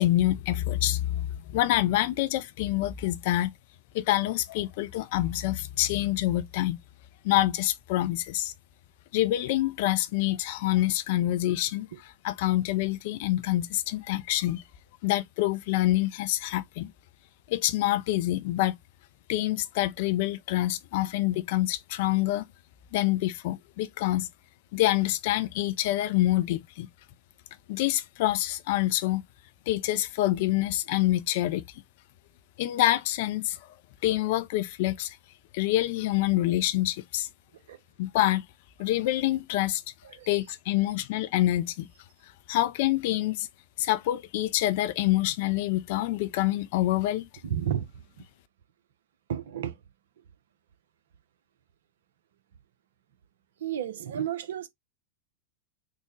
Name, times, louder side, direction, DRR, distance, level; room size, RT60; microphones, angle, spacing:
voice 1, 0.0-3.5 3.9-6.8 7.2-8.5 9.1-11.9 12.2-14.6 15.0-16.9 17.5-18.7 19.3-22.4 22.9-24.3 24.7-26.9 27.7-29.2 29.7-31.8 32.6-33.6 34.0-35.2 35.5-37.3 38.0-38.4 38.8-39.8 40.3-41.9 42.5-43.5 43.8-47.3, left 15 dB, 55° left, 0.4 m, -26 dB
voice 2, 47.4-47.8 49.3-49.8 53.6-54.7, right 9 dB, 65° right, 0.5 m, -32 dB
3.5 x 2.0 x 3.1 m
figure-of-eight pair, 90°, 0 cm